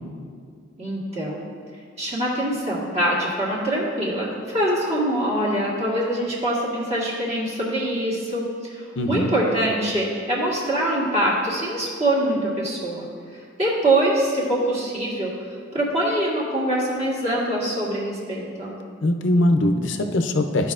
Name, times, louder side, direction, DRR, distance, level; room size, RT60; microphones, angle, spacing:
voice 1, 0.8-1.4 2.0-13.1 13.3-15.3 15.7-18.7, right 1 dB, 30° right, -5 dB, 1.6 m, -24 dB
voice 2, 9.0-9.3 19.0-20.7, left 1 dB, 60° left, 6 dB, 0.5 m, -21 dB
13.5 x 4.7 x 2.5 m, 2.1 s
head